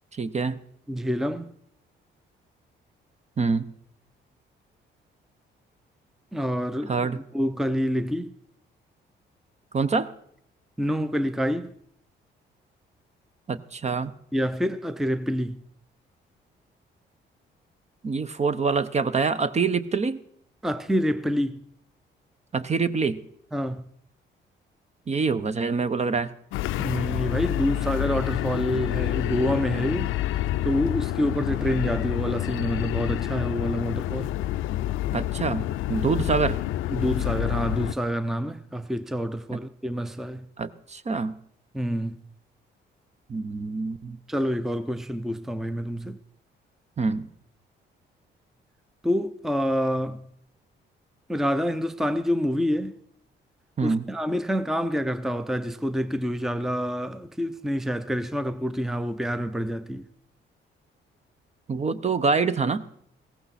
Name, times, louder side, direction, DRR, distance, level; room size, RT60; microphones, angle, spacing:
voice 1, 0.1-0.6 3.4-3.7 6.9-7.2 9.7-10.1 13.5-14.1 18.0-20.2 22.5-23.2 25.1-26.3 35.1-36.6 39.5-39.6 40.6-41.3 43.3-44.2 47.0-47.3 53.8-54.0 61.7-62.8, right 4 dB, 35° right, 0.8 m, -25 dB
voice 2, 0.9-1.5 6.3-7.1 7.3-8.3 10.8-11.7 14.3-15.6 20.6-21.7 23.5-23.8 26.8-30.1 30.6-34.3 36.9-40.5 41.7-42.2 44.3-46.2 49.0-50.3 51.3-53.0 53.8-60.0, equal, ahead, 0.6 m, -27 dB
sound 1, 26.5-37.9, left 14 dB, 90° left, 0.5 m, -28 dB
16.5 x 15.0 x 4.2 m
cardioid pair, 90°, 20 cm